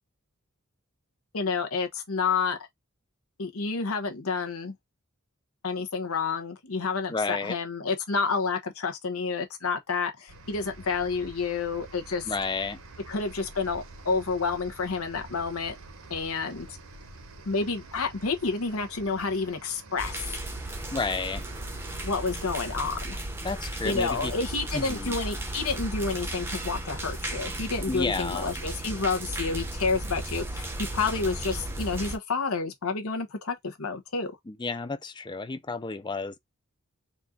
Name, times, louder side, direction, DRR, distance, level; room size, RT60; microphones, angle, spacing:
voice 1, 1.3-2.6 3.4-4.7 5.6-12.3 13.1-15.7 16.1-16.8 17.5-20.3 22.0-23.2 23.8-34.3, left 4 dB, 75° left, 0.9 m, -29 dB
voice 2, 7.1-7.6 12.3-12.8 20.9-21.4 23.4-24.3 24.7-25.1 27.9-28.5 34.5-36.4, left 4 dB, 20° left, 0.4 m, -31 dB
sound 1, 10.3-22.8, right 2 dB, 75° right, 1.0 m, -47 dB
sound 2, 20.0-32.2, right 1 dB, 10° right, 0.7 m, -35 dB
4.2 x 2.5 x 3.6 m
head